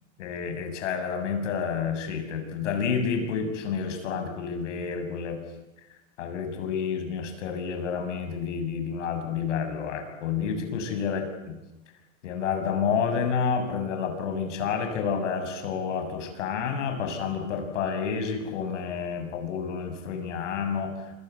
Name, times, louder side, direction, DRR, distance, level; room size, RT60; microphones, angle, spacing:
voice 1, 0.2-5.4 6.2-11.5 12.2-21.1, left 6 dB, 80° left, 6 dB, 7.4 m, -29 dB
27.5 x 25.5 x 8.4 m, 0.98 s
supercardioid pair, 120°, 36 cm